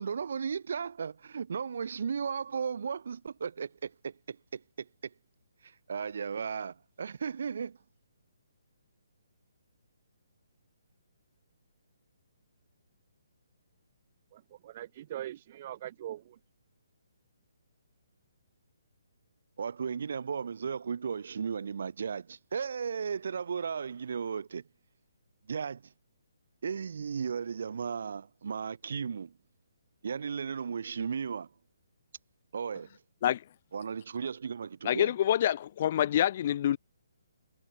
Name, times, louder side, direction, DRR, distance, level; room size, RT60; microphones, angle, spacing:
voice 1, 0.0-5.1 5.6-7.8 19.6-24.6 25.5-25.9 26.6-29.3 30.0-31.5 32.5-32.9 33.7-35.1, right 6 dB, 60° right, 6.4 m, -35 dB
voice 2, 14.3-16.4, right 12 dB, 35° right, 0.9 m, -42 dB
voice 3, 34.8-36.8, left 11 dB, 40° left, 1.4 m, -26 dB
hypercardioid pair, 165°, 0 cm